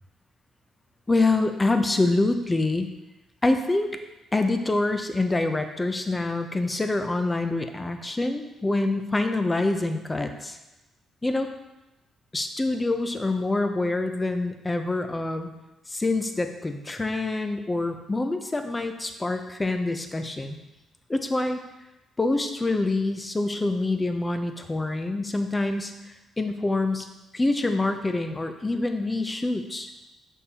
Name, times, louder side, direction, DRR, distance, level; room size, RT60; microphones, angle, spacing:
voice 1, 1.1-2.9 3.4-4.0 4.3-10.6 11.2-11.5 12.3-15.5 15.9-20.6 21.1-21.6 22.2-27.1 27.3-29.9, left 2 dB, 20° left, 6 dB, 0.6 m, -26 dB
6.5 x 5.4 x 2.8 m, 1.0 s
cardioid pair, 90°, 0 cm